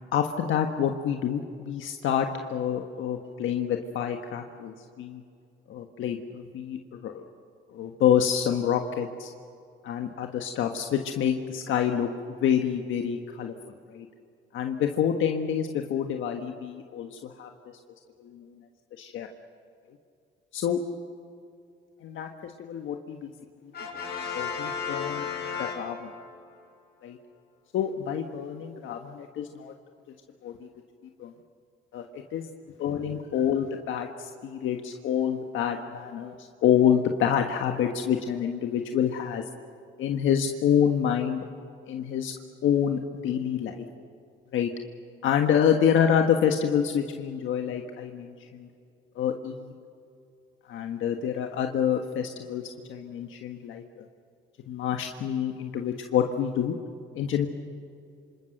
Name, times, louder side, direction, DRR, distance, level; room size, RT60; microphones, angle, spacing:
voice 1, 0.1-5.2 5.7-7.2 7.7-9.3 9.8-12.1 12.4-13.5 13.9-14.1 14.5-17.5 18.2-18.6 19.0-19.3 20.5-20.8 22.0-23.3 24.3-25.3 25.6-26.1 27.0-27.2 27.7-29.7 30.4-30.7 31.2-31.3 31.9-32.5 32.8-36.4 36.6-39.4 40.0-41.4 41.9-42.3 42.6-43.8 44.5-44.7 45.2-48.7 49.1-49.7 50.7-52.6 52.9-54.0 54.7-56.8 57.1-57.5, left 8 dB, 80° left, 4 dB, 1.5 m, -27 dB
Brass instrument, 23.7-26.4, left 6 dB, 55° left, 6.3 m, -34 dB
27.5 x 26.5 x 6.6 m, 2.5 s
cardioid pair, 90°, 20 cm